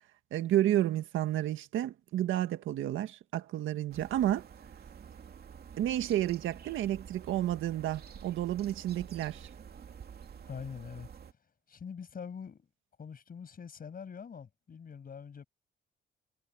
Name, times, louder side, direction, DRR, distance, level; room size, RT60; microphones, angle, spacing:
voice 1, 0.3-4.4 5.8-9.5, right 12 dB, 80° right, 1.8 m, -31 dB
sound 1, 3.9-11.3, right 7 dB, 50° right, 2.7 m, -49 dB
voice 2, 10.4-11.1 11.7-12.7 13.0-15.4, left 6 dB, 45° left, 6.8 m, -44 dB
cardioid pair, 90°, 20 cm